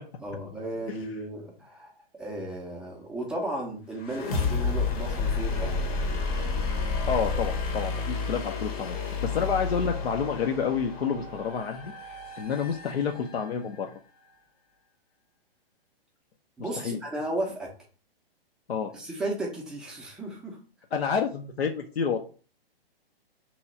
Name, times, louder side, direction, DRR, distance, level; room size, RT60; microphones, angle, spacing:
voice 1, 0.2-1.9 2.2-5.9 16.6-17.7 18.9-20.6, right 1 dB, 5° right, -2 dB, 0.4 m, -34 dB
sound 1, 4.0-13.8, left 4 dB, 40° left, 0.7 m, -31 dB
voice 2, 7.1-14.0 16.6-17.0 18.7-18.9 20.9-22.2, left 6 dB, 85° left, 3 dB, 0.6 m, -29 dB
3.0 x 2.3 x 4.0 m, 0.38 s
hypercardioid pair, 130°, 30 cm